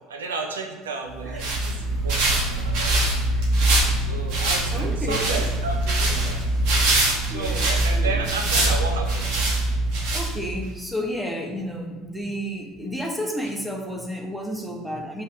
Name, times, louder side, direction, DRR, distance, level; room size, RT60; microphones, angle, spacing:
voice 1, 0.1-3.0 3.3-3.4 4.1-6.4 7.3-9.3, right 3 dB, 80° right, 3 dB, 1.0 m, -32 dB
voice 2, 1.2-1.6 4.7-5.5 7.3-8.2 9.6-9.7 10.1-15.2, equal, 5° right, 1 dB, 1.6 m, -31 dB
sound 1, 1.2-10.7, right 2 dB, 60° right, 2.1 m, -23 dB
5.6 x 5.0 x 6.1 m, 1.3 s
figure-of-eight pair, 65°, 0 cm